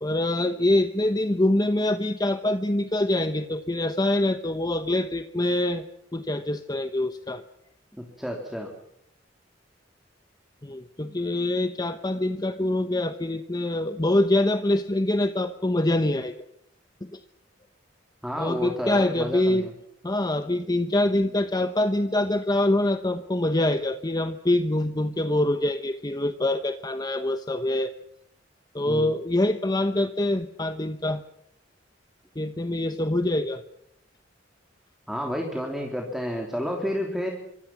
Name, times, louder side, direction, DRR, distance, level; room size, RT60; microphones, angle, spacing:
voice 1, 0.0-5.9 6.1-7.4 10.6-16.3 17.0-17.2 18.4-19.7 20.0-27.9 28.7-31.2 32.4-33.6, left 1 dB, 20° left, 9 dB, 1.0 m, -25 dB
voice 2, 7.9-8.7 18.2-19.7 28.8-29.1 35.1-37.3, equal, ahead, 1 dB, 3.2 m, -30 dB
26.5 x 25.0 x 6.1 m, 0.73 s
head